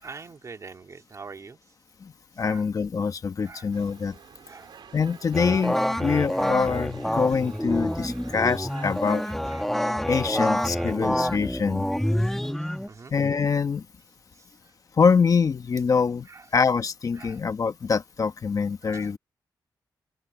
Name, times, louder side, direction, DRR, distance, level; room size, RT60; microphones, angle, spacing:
voice 1, 0.0-1.6 2.4-2.6 3.4-3.7 4.5-4.7 5.9-6.1 8.3-8.5 9.4-9.7 10.3-11.0 12.2-13.1 14.3-14.4 16.3-16.4 17.2-17.4 18.8-19.1, right 4 dB, 40° right, 2.6 m, -45 dB
voice 2, 2.4-4.1 4.9-9.2 10.1-11.9 13.1-13.8 15.0-16.3 16.5-19.2, left 5 dB, 45° left, 1.2 m, -24 dB
sound 1, 3.7-9.3, right 8 dB, 80° right, 3.6 m, -49 dB
sound 2, 5.3-12.9, equal, 5° left, 1.5 m, -27 dB
wide cardioid pair, 115°, 8 cm